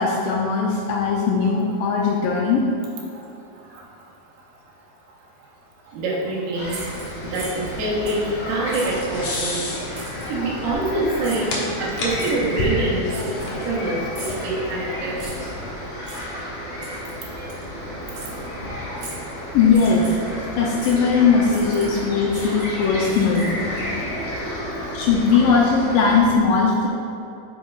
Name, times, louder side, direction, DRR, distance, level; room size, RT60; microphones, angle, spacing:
voice 1, 0.0-2.6 19.5-20.2 20.6-23.6 24.9-26.9, left 5 dB, 80° left, -2 dB, 2.1 m, -19 dB
voice 2, 5.9-6.8 7.2-9.6 10.3-15.3 17.4-17.5 25.3-25.4, right 2 dB, 85° right, -4 dB, 3.2 m, -25 dB
sound 1, 6.5-26.2, equal, 45° left, 1.2 m, -32 dB
sound 2, 6.7-7.7 8.1-8.3 8.7-9.6 9.9-10.3 11.2-11.6 12.2-12.4 13.1-13.8 14.1-14.5 15.2-15.5 16.0-16.2 16.8-17.1 17.5-17.6 18.1-18.3 19.0-19.3 19.7-20.3 20.8-21.0 21.5-22.0 22.3-23.8, right 2 dB, 65° right, 1.7 m, -39 dB
sound 3, 7.2-15.8, left 2 dB, 65° left, 1.6 m, -32 dB
8.5 x 7.4 x 2.4 m, 2.8 s
omnidirectional pair, 4.5 m